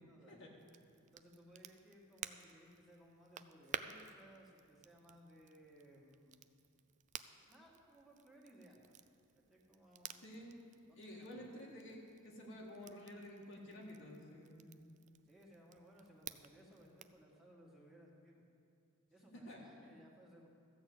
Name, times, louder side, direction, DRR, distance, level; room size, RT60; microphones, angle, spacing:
voice 1, 0.1-0.6 1.0-6.4 7.5-9.0 9.3-10.3 10.9-11.5 15.3-18.5 19.1-20.5, equal, ahead, -4 dB, 2.0 m, -62 dB
Crackle, 0.6-17.2, right 8 dB, 35° right, 0.4 m, -54 dB
voice 2, 10.2-10.5 10.9-14.9 19.3-19.6, left 1 dB, 60° left, -2 dB, 1.8 m, -51 dB
14.0 x 6.5 x 7.9 m, 2.3 s
head